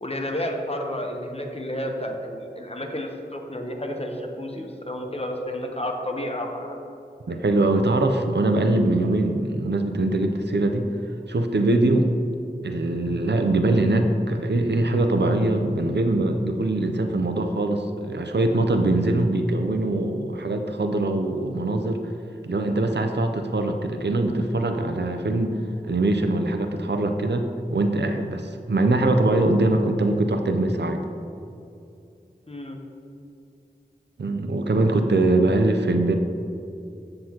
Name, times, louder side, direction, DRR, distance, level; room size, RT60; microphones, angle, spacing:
voice 1, 0.0-6.8 32.5-32.8, left 1 dB, 35° left, 2 dB, 0.9 m, -31 dB
voice 2, 7.3-10.9 11.3-12.1 12.6-22.0 22.4-25.6 25.8-28.4 28.7-31.0 34.2-36.2, right 2 dB, 85° right, 6 dB, 0.6 m, -22 dB
7.7 x 7.5 x 2.9 m, 2.6 s
wide cardioid pair, 45°, 17 cm